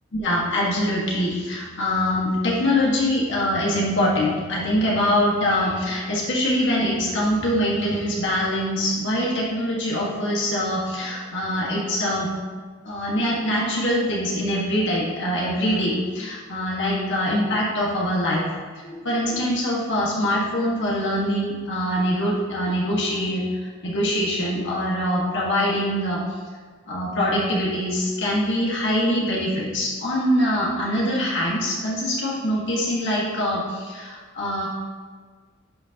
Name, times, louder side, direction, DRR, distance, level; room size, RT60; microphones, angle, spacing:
voice 1, 0.1-12.4 12.8-26.2 26.9-34.7, equal, 60° left, -5 dB, 1.7 m, -23 dB
11.0 x 6.1 x 2.9 m, 1.5 s
head